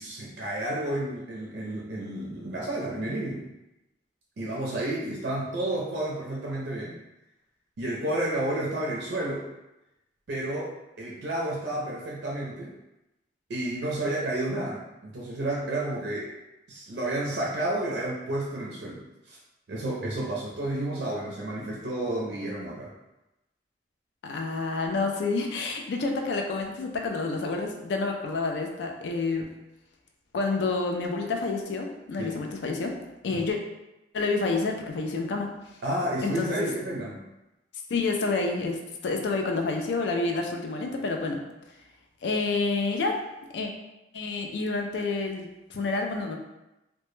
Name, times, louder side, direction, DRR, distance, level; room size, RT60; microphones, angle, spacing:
voice 1, 0.0-3.4 4.4-7.0 7.8-9.5 10.3-12.7 13.5-16.3 16.7-19.0 19.3-19.4 19.7-22.9 32.2-32.3 33.3-33.4 35.8-37.2, right 1 dB, 65° right, -4 dB, 0.4 m, -31 dB
voice 2, 24.2-29.5 30.3-33.0 33.2-33.6 34.1-35.5 36.2-36.6 37.9-41.4 42.2-43.2 43.5-43.7 44.1-46.4, left 3 dB, 75° left, 2 dB, 0.4 m, -28 dB
2.1 x 2.0 x 3.0 m, 0.95 s
head